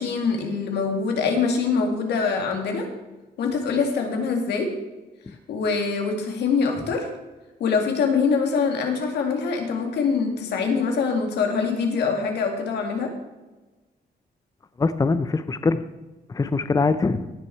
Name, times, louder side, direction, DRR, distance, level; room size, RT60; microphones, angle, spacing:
voice 1, 0.0-2.9 3.4-4.7 5.5-7.1 7.6-13.1, left 5 dB, 85° left, 3 dB, 2.0 m, -24 dB
voice 2, 14.8-15.8 16.3-17.3, left 4 dB, 20° left, 12 dB, 0.5 m, -23 dB
17.0 x 6.0 x 4.6 m, 1.1 s
cardioid pair, 85°, 17 cm